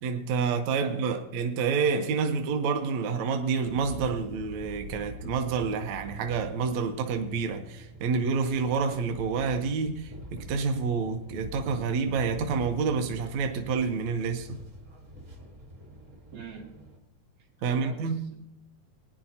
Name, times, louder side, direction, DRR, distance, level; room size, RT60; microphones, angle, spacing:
voice 1, 0.0-14.6 17.6-18.4, right 5 dB, 70° right, 1.8 m, -28 dB
voice 2, 0.8-1.2 16.3-16.7 17.7-18.4, right 6 dB, 85° right, 3.9 m, -45 dB
sound 1, 3.6-17.0, equal, 45° right, 0.9 m, -45 dB
21.0 x 9.7 x 2.8 m
omnidirectional pair, 3.8 m